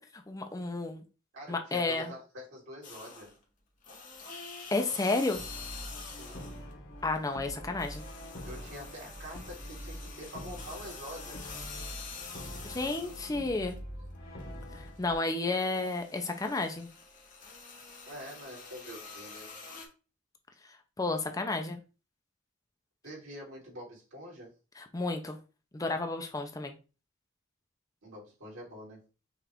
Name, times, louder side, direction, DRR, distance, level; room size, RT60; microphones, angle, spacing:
voice 1, 0.3-1.0 1.5-2.1 4.7-5.4 7.0-8.0 12.6-13.8 14.8-16.9 21.0-21.8 24.8-25.4 25.7-26.7, left 3 dB, 15° left, 4 dB, 0.4 m, -31 dB
voice 2, 1.3-3.3 6.2-6.5 8.4-11.4 14.0-14.1 18.1-19.5 23.0-24.5 28.0-29.0, equal, 85° right, -4 dB, 2.7 m, -46 dB
sound 1, 2.8-3.4 3.8-6.7 7.0-13.8 14.2-19.9, left 4 dB, 40° left, 1.0 m, -47 dB
Brass instrument, 5.3-15.1, equal, 80° left, 1.4 m, -44 dB
5.6 x 2.4 x 3.5 m, 0.33 s
head